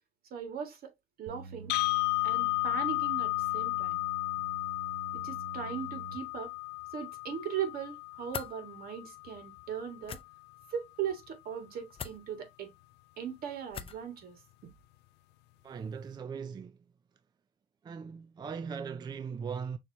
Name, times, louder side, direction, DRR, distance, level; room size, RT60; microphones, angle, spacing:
voice 1, 0.3-0.9 1.2-1.7 2.2-4.0 5.1-6.5 6.9-10.2 10.7-12.7 13.2-14.7, right 8 dB, 60° right, 1.7 m, -39 dB
sound 1, 1.3-6.2, right 4 dB, 85° right, 0.6 m, -46 dB
sound 2, 1.7-9.7, left 27 dB, 85° left, 0.4 m, -33 dB
sound 3, 8.3-8.5 10.0-10.2 11.9-12.2 13.7-14.0, left 7 dB, 35° left, 0.5 m, -39 dB
voice 2, 15.6-16.8 17.8-19.8, right 6 dB, 25° right, 0.4 m, -39 dB
6.3 x 2.9 x 2.7 m
cardioid pair, 110°, 17 cm